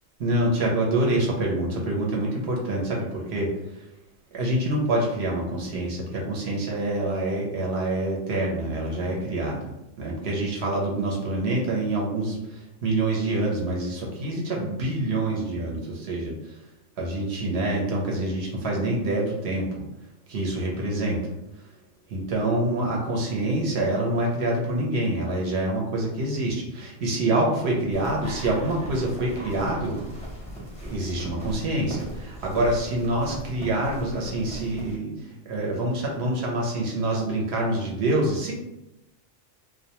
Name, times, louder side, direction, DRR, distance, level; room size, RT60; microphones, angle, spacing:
voice 1, 0.2-3.5 4.3-9.7 10.0-16.3 17.0-19.7 20.3-21.2 22.1-29.9 30.8-35.1 35.5-38.5, right 1 dB, 70° right, -1 dB, 0.9 m, -26 dB
sound 1, 27.9-35.0, equal, 10° left, 0.4 m, -38 dB
2.2 x 2.1 x 2.8 m, 0.91 s
omnidirectional pair, 1.2 m